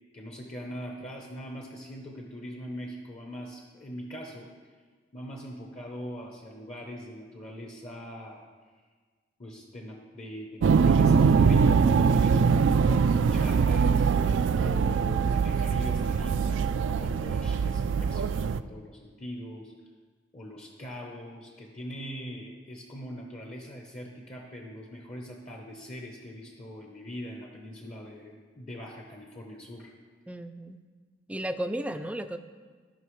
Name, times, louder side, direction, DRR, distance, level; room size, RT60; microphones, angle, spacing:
voice 1, 0.1-4.5 5.1-8.5 9.4-14.1 14.5-19.7 20.3-29.9, equal, 40° left, 0 dB, 0.9 m, -42 dB
sound 1, 10.6-18.6, right 5 dB, 90° right, 0.3 m, -23 dB
voice 2, 30.3-30.8 31.3-32.4, right 1 dB, 5° right, 9 dB, 0.4 m, -34 dB
16.5 x 5.6 x 3.1 m, 1.5 s
head